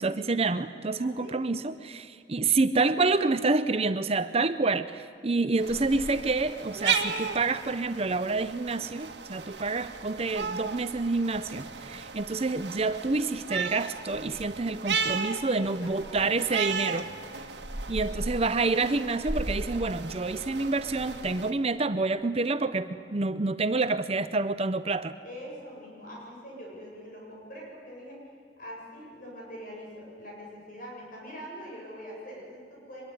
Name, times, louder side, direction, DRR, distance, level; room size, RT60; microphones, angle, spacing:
voice 1, 0.0-17.1 17.9-25.1, right 3 dB, 35° right, 11 dB, 0.7 m, -28 dB
voice 2, 1.0-1.4 15.5-16.7 17.9-18.4 25.2-28.3 28.6-33.0, equal, 50° left, -2 dB, 7.6 m, -44 dB
sound 1, 5.6-21.5, right 5 dB, 65° right, 1.9 m, -35 dB
24.0 x 22.0 x 9.4 m, 2.2 s
head